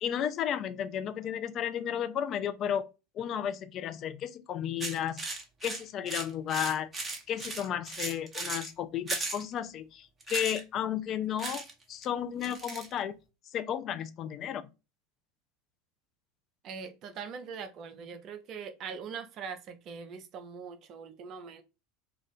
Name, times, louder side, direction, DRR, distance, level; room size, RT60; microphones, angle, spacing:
voice 1, 0.0-2.9 3.1-5.2 5.6-6.9 7.3-13.2 13.5-14.7, left 9 dB, 40° left, 0.3 m, -33 dB
sound 1, 4.8-8.7 9.1-9.4 10.2-10.6 11.4-11.7 12.0-12.1 12.4-12.9, right 3 dB, 20° right, 0.8 m, -37 dB
voice 2, 16.6-21.6, right 6 dB, 45° right, 0.4 m, -42 dB
2.5 x 2.3 x 3.4 m
figure-of-eight pair, 75°, 0 cm